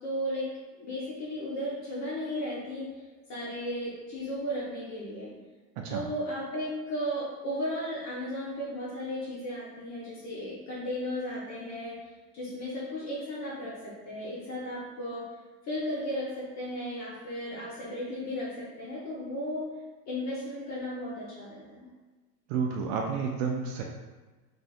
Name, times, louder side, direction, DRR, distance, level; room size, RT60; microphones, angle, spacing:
voice 1, 0.0-2.9 3.3-5.3 5.9-12.0 12.3-15.3 15.7-19.7 20.1-21.9, equal, 35° left, -7 dB, 1.1 m, -35 dB
voice 2, 22.5-23.8, right 5 dB, 40° right, 2 dB, 0.5 m, -30 dB
4.2 x 2.5 x 2.4 m, 1.3 s
figure-of-eight pair, 80°, 48 cm